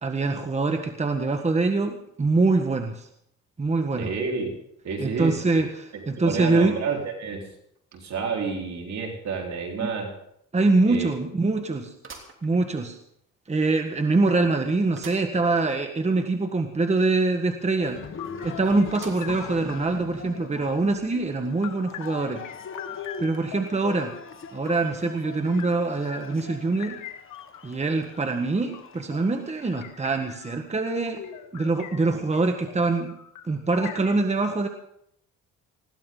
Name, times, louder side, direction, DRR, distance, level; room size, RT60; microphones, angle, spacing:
voice 1, 0.0-3.1 3.6-4.1 5.0-6.7 9.8-9.9 10.5-11.9 12.4-13.0 13.5-18.0 18.4-22.4 23.2-24.1 24.5-27.0 27.6-31.2 31.5-33.2 33.5-34.7, right 3 dB, 20° right, 5 dB, 1.5 m, -24 dB
voice 2, 4.0-4.5 4.8-5.6 5.9-7.5 7.9-10.1 10.9-11.1, right 5 dB, 65° right, 0 dB, 4.2 m, -30 dB
sound 1, 12.0-13.1 13.6-13.7 15.0-15.4 15.8-15.9 16.1-16.2 18.9-19.6 20.1-20.2 21.2-21.3, right 4 dB, 40° right, 3.1 m, -45 dB
Cheering, 17.8-29.8, left 6 dB, 45° left, 1.6 m, -42 dB
sound 2, 18.2-20.1 20.6-21.2 21.6-25.0 25.4-34.1, left 10 dB, 80° left, 1.5 m, -43 dB
20.5 x 16.0 x 3.9 m, 0.73 s
cardioid pair, 90°, 30 cm